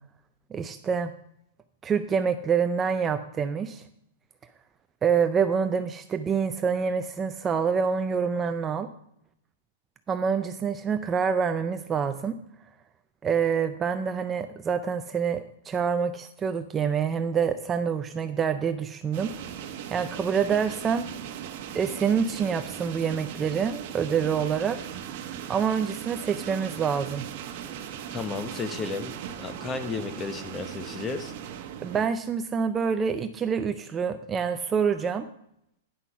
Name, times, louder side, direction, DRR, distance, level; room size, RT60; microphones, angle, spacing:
voice 1, 0.5-1.1 1.8-3.8 5.0-8.9 10.1-12.4 13.2-19.3 19.9-21.0 21.7-24.8 25.5-27.2 31.8-35.3, right 6 dB, 15° right, 9 dB, 0.4 m, -26 dB
sound 1, 19.1-32.1, right 9 dB, 45° right, 1.0 m, -38 dB
voice 2, 28.1-31.3, left 4 dB, 15° left, 9 dB, 0.9 m, -33 dB
9.9 x 5.9 x 5.7 m, 0.76 s
hypercardioid pair, 150°, 0 cm